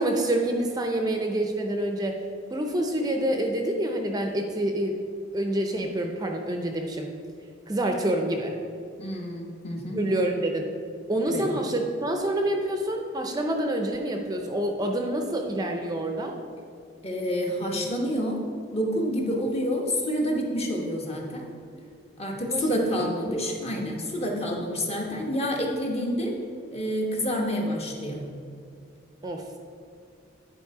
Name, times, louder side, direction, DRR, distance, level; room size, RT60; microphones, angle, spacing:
voice 1, 0.0-2.2 2.5-5.0 5.3-7.1 7.7-8.5 9.9-10.7 11.1-16.4 22.5-22.8 29.2-29.4, right 1 dB, 20° right, 3 dB, 0.5 m, -27 dB
voice 2, 9.0-10.0 11.2-11.5 17.0-18.4 18.7-21.4 22.2-26.3 26.7-28.3, equal, 35° left, 0 dB, 1.1 m, -28 dB
9.8 x 4.3 x 4.7 m, 2.4 s
head